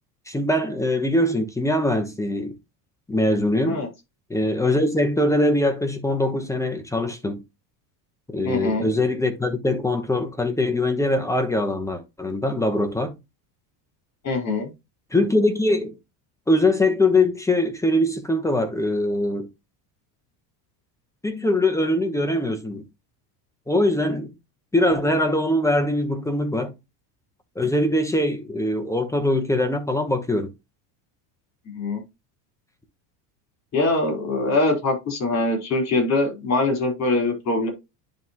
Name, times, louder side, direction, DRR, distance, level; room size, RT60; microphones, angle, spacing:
voice 1, 0.3-2.5 3.1-3.8 4.3-7.4 8.3-13.1 15.1-16.0 16.5-19.5 21.2-22.8 23.7-24.3 24.7-26.7 27.6-30.5, left 1 dB, 5° left, 1.0 m, -22 dB
voice 2, 8.4-8.9 14.2-14.7 31.7-32.0 33.7-37.7, left 2 dB, 35° left, 4.3 m, -23 dB
10.5 x 3.6 x 2.9 m
cardioid pair, 135°, 45 cm